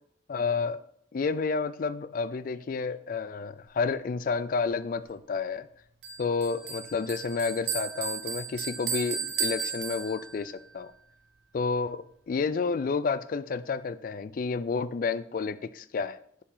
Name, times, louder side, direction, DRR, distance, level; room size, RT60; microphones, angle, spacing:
voice 1, 0.3-0.8 1.1-5.7 6.2-10.9 11.5-16.4, left 4 dB, 50° left, 15 dB, 0.3 m, -30 dB
Bell, 6.0-10.5, right 6 dB, 70° right, 1.3 m, -34 dB
10.0 x 4.7 x 3.9 m, 0.68 s
head